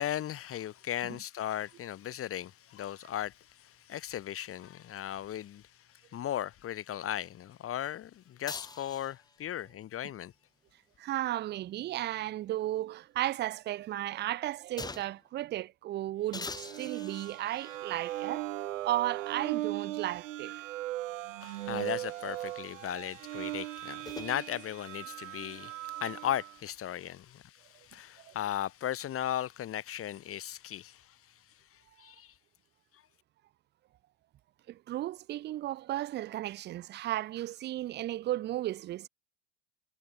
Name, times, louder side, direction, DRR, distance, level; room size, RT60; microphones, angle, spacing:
voice 1, 0.0-10.3 21.4-31.2 31.7-32.3 32.9-33.0, left 11 dB, 35° left, 1.9 m, -37 dB
sound 1, 8.5-9.4 11.2-12.7 13.2-13.3 14.8-15.3 16.3-17.9 18.8-18.9 23.5-24.3, left 4 dB, 10° left, 0.9 m, -45 dB
voice 2, 11.0-18.5 18.8-20.7 28.2-28.3 34.7-39.1, right 14 dB, 30° right, 0.5 m, -34 dB
sound 2, 16.3-26.6, right 15 dB, 85° right, 0.6 m, -38 dB
hypercardioid pair, 95°, 37 cm